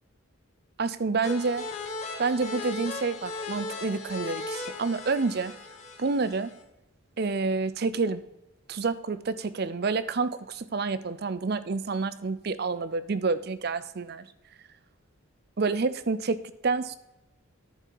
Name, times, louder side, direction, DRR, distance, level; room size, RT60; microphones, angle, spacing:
voice 1, 0.8-1.6 2.2-5.5 6.0-6.5 7.2-8.2 8.7-14.2 15.6-17.0, right 4 dB, 45° right, 15 dB, 0.5 m, -28 dB
sound 1, 1.2-6.6, left 3 dB, 30° left, 1.2 m, -37 dB
10.5 x 6.8 x 4.7 m, 0.93 s
head